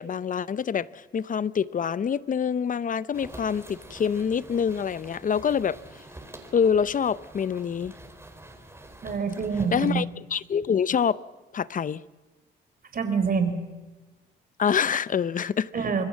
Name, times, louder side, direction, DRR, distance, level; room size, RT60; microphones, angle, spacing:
voice 1, 0.0-5.8 6.5-7.9 9.7-10.1 10.3-11.2 11.5-12.0 14.6-15.7, left 7 dB, 40° left, 0.7 m, -26 dB
sound 1, 3.1-9.9, right 1 dB, 10° right, 4.5 m, -46 dB
voice 2, 9.0-10.0 12.9-13.5 15.7-16.0, right 5 dB, 45° right, 4.3 m, -26 dB
26.5 x 21.0 x 7.4 m
cardioid pair, 90°, 20 cm